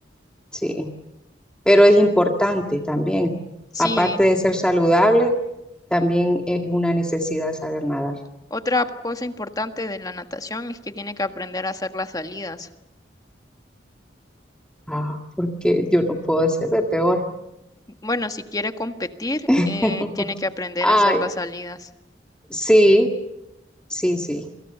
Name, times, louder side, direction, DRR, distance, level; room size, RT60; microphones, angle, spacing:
voice 1, 0.5-0.9 1.7-3.3 3.8-5.3 5.9-8.2 14.9-17.2 19.5-20.3 20.8-21.2 22.5-23.1 23.9-24.5, equal, 5° left, 2 dB, 1.9 m, -19 dB
voice 2, 3.7-4.2 8.5-12.7 18.0-21.9, left 2 dB, 20° left, 8 dB, 1.6 m, -28 dB
28.0 x 26.0 x 6.8 m, 0.88 s
head